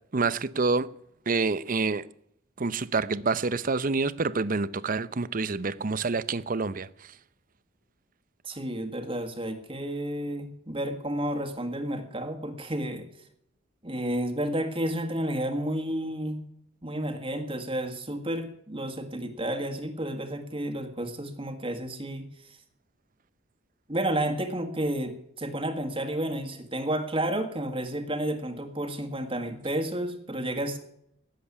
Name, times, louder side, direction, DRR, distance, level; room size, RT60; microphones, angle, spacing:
voice 1, 0.1-0.9 1.3-2.0 2.6-6.9, right 4 dB, 45° right, 0.7 m, -27 dB
voice 2, 8.4-13.1 13.8-16.4 16.8-22.3 23.9-30.8, right 1 dB, 30° right, 1.8 m, -31 dB
18.5 x 7.7 x 9.9 m
head